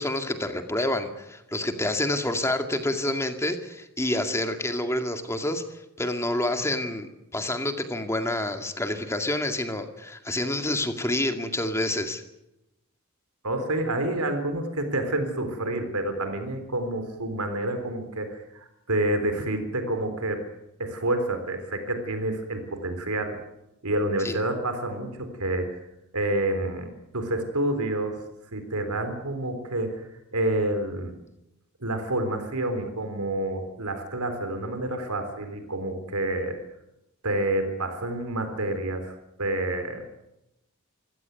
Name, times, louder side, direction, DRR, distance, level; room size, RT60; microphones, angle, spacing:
voice 1, 0.0-12.2 24.2-24.4, left 1 dB, 10° left, 6 dB, 2.2 m, -28 dB
voice 2, 13.4-20.4 20.8-23.4 23.8-25.8 26.1-28.2 28.5-31.1 31.8-36.6 37.2-39.1 39.4-40.0, right 1 dB, 85° right, 7 dB, 3.8 m, -28 dB
25.5 x 16.5 x 9.5 m, 0.90 s
head